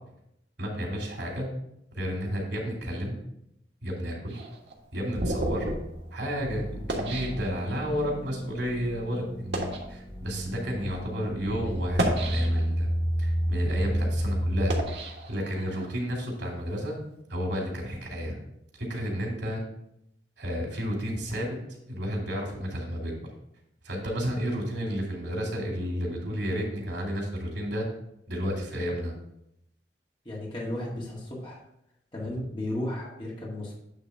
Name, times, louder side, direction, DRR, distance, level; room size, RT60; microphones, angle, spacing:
voice 1, 0.6-1.5 1.9-3.2 3.8-4.4 4.9-5.7 6.1-12.9 13.2-14.7 15.3-17.0 17.3-18.4 18.8-19.6 20.4-21.6 21.9-23.1 23.8-27.9 28.3-29.1, equal, 85° right, -1 dB, 2.7 m, -31 dB
sound 1, 4.3-8.0 8.7-8.8 9.4-9.9 10.7-10.8 11.8-12.9 13.4-15.9, right 1 dB, 70° right, 1.5 m, -33 dB
sound 2, 6.4-14.8, equal, 10° left, 1.9 m, -31 dB
voice 2, 30.3-31.6 32.1-33.7, left 1 dB, 30° left, -4 dB, 1.8 m, -34 dB
9.1 x 3.6 x 5.5 m, 0.79 s
head